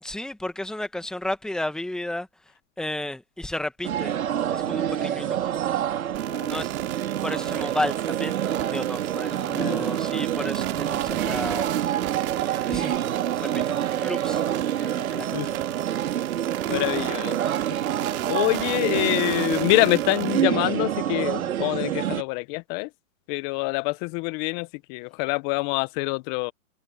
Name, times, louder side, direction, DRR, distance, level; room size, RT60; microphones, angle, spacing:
voice 1, 0.0-2.3 2.8-4.2 4.5-5.4 6.4-6.7 7.2-11.7 12.5-13.0 13.4-14.4 14.8-15.6, left 1 dB, ahead, 1.3 m, -33 dB
sound 1, 3.8-22.2, right 10 dB, 75° right, 4.3 m, -27 dB
sound 2, 6.1-20.4, right 21 dB, 35° right, 3.1 m, -35 dB
voice 2, 9.3-9.8 15.3-15.5 16.7-17.4 18.3-22.9 23.3-26.5, left 25 dB, 35° left, 1.0 m, -26 dB
hypercardioid pair, 140°, 42 cm